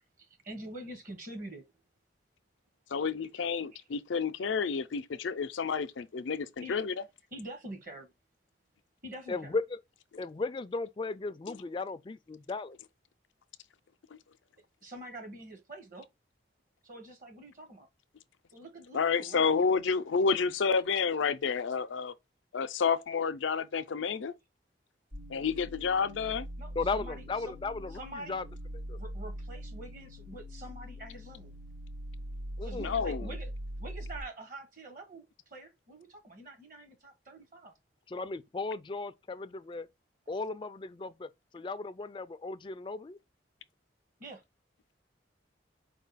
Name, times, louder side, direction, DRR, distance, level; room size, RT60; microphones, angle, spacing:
voice 1, 0.2-1.6 3.1-3.2 6.6-6.8 7.3-8.1 9.0-9.6 14.8-16.1 16.8-17.9 18.5-19.6 26.6-27.5 27.9-28.4 28.9-31.5 32.6-33.5 33.8-37.7 44.2-44.4, right 1 dB, 45° right, 1.1 m, -46 dB
voice 2, 2.9-6.9 14.1-14.2 18.9-22.1 22.5-24.3 25.3-26.5 32.8-33.3, left 5 dB, 85° left, 0.5 m, -30 dB
voice 3, 9.3-9.8 10.2-12.8 26.8-28.5 28.9-29.0 32.6-33.3 38.1-39.9 40.3-43.2, left 3 dB, 25° left, 0.3 m, -36 dB
sound 1, 25.1-34.2, equal, 85° right, 1.1 m, -42 dB
4.8 x 2.2 x 3.9 m
head